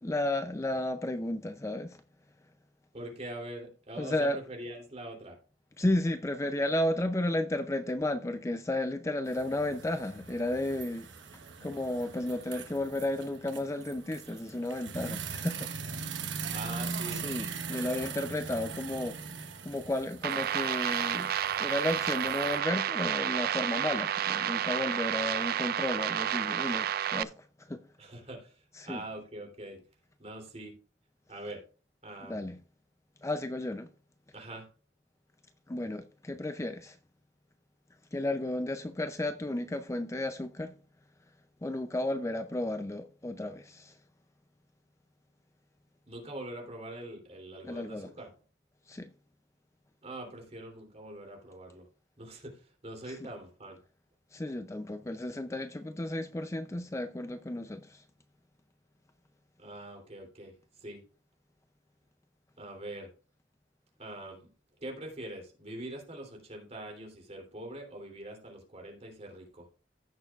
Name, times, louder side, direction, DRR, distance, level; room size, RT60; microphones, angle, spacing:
voice 1, 0.0-2.0 4.0-4.4 5.8-16.1 17.1-19.2 19.6-21.3 21.6-27.8 28.7-29.0 32.3-32.6 33.2-33.9 35.7-37.0 38.1-40.8 41.6-44.0 47.6-48.1 48.9-49.1 53.1-53.2 54.3-58.0, left 1 dB, 15° left, 0.4 m, -33 dB
voice 2, 2.9-5.4 16.5-17.2 28.0-29.8 30.2-30.7 31.3-31.6 32.0-32.5 34.3-34.7 46.1-48.3 50.0-51.8 52.2-53.8 59.6-61.0 62.6-63.1 64.0-64.5 64.8-69.7, right 1 dB, 35° right, 3.0 m, -43 dB
sound 1, 9.3-22.6, right 5 dB, 70° right, 1.0 m, -41 dB
sound 2, 20.2-27.2, right 10 dB, 55° right, 0.3 m, -30 dB
15.5 x 6.7 x 2.4 m
head